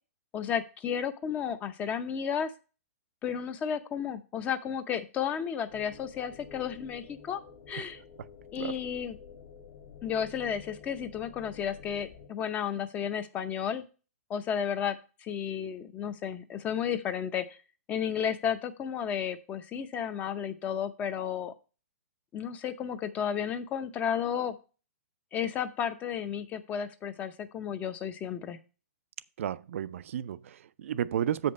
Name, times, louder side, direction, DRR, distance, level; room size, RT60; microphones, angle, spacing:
voice 1, 0.3-2.5 3.2-7.4 7.7-8.0 8.5-9.2 10.0-13.8 14.3-17.6 17.9-21.5 22.3-24.5 25.3-28.6, left 8 dB, 20° left, 0.6 m, -33 dB
sound 1, 5.7-12.3, left 6 dB, 55° left, 1.5 m, -50 dB
voice 2, 29.4-31.5, right 10 dB, 60° right, 0.4 m, -32 dB
7.7 x 5.3 x 5.2 m
hypercardioid pair, 155°, 8 cm